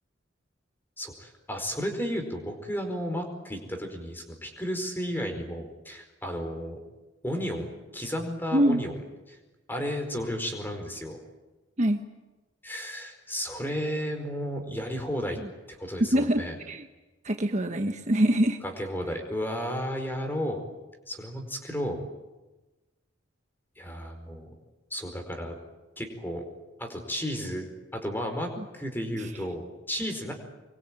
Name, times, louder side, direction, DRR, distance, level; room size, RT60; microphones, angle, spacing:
voice 1, 1.0-6.8 7.2-8.9 9.3-9.4 9.7-11.2 12.6-15.4 15.8-16.5 18.6-20.6 21.1-22.0 23.8-24.5 24.9-25.6 26.0-26.4 26.8-27.7 27.9-30.3, equal, 10° left, 4 dB, 4.7 m, -33 dB
voice 2, 8.5-8.8 11.8-12.0 16.1-16.9 17.2-18.6, right 1 dB, 40° right, 6 dB, 1.2 m, -24 dB
25.5 x 23.0 x 9.0 m, 1.1 s
head